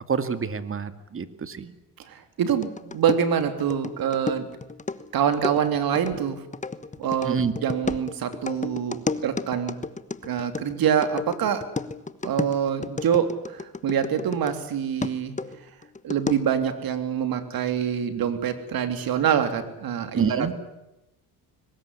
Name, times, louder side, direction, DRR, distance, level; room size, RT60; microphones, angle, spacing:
voice 1, 0.1-1.7 7.2-7.5 20.1-20.5, right 6 dB, 35° right, 11 dB, 2.2 m, -27 dB
voice 2, 2.0-4.5 5.1-6.4 7.0-9.7 10.2-11.6 12.2-15.3 16.0-20.5, right 8 dB, 60° right, 10 dB, 3.4 m, -25 dB
sound 1, 2.5-14.7 15.0-16.6, left 4 dB, 20° left, 1.2 m, -33 dB
22.5 x 20.0 x 9.8 m, 0.91 s
cardioid pair, 85°, 39 cm